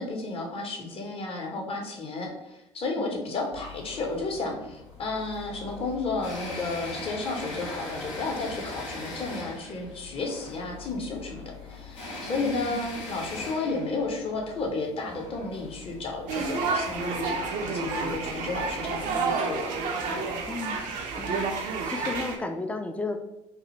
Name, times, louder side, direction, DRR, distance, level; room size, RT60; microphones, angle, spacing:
voice 1, 0.0-19.7 20.1-20.3, left 3 dB, 35° left, 1 dB, 0.7 m, -32 dB
sound 1, 3.5-19.2, left 2 dB, 80° left, 0.6 m, -41 dB
voice 2, 12.4-12.8 13.4-13.5 20.5-20.8 21.2-23.2, left 3 dB, 10° left, 5 dB, 0.3 m, -34 dB
sound 2, 16.3-22.4, right 4 dB, 55° right, 0.4 m, -30 dB
2.4 x 2.0 x 2.8 m, 0.87 s
figure-of-eight pair, 55°, 16 cm